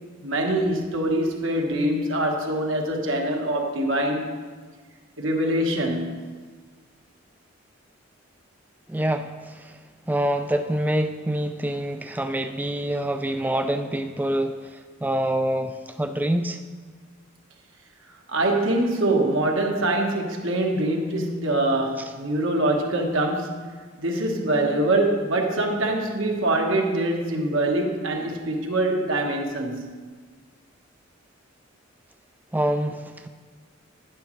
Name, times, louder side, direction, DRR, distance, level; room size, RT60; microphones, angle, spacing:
voice 1, 0.2-4.3 5.2-6.3 18.3-23.7 24.0-30.0, right 1 dB, 65° right, 2 dB, 1.3 m, -24 dB
voice 2, 8.9-9.8 10.1-16.6 32.5-33.3, right 1 dB, 10° right, 7 dB, 0.3 m, -26 dB
11.5 x 10.0 x 3.2 m, 1.5 s
head